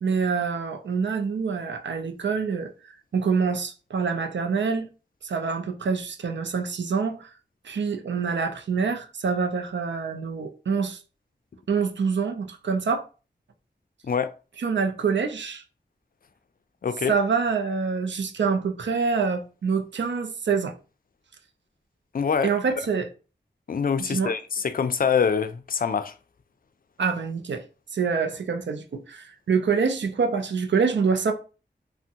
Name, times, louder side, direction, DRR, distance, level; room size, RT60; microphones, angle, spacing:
voice 1, 0.0-2.7 3.1-4.9 5.2-7.3 7.6-11.0 11.7-13.1 14.6-15.6 17.1-20.8 22.4-23.1 24.0-24.3 27.0-27.6 27.9-31.3, right 5 dB, 85° right, 0.4 m, -26 dB
voice 2, 16.8-17.1 22.1-22.5 23.7-26.1, left 6 dB, 55° left, 0.4 m, -25 dB
3.4 x 2.1 x 2.7 m
wide cardioid pair, 40°, 18 cm